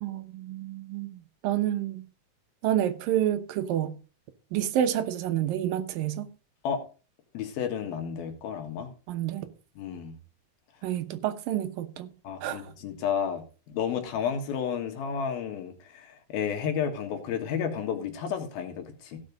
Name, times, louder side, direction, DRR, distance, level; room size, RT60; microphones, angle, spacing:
voice 1, 0.0-2.1 2.6-3.9 4.5-6.3 9.1-9.5 10.8-12.1 12.4-12.6, right 11 dB, 80° right, 2.7 m, -29 dB
voice 2, 7.3-8.9 9.8-10.1 12.2-19.2, left 7 dB, 90° left, 3.5 m, -32 dB
15.5 x 6.5 x 5.2 m
omnidirectional pair, 4.1 m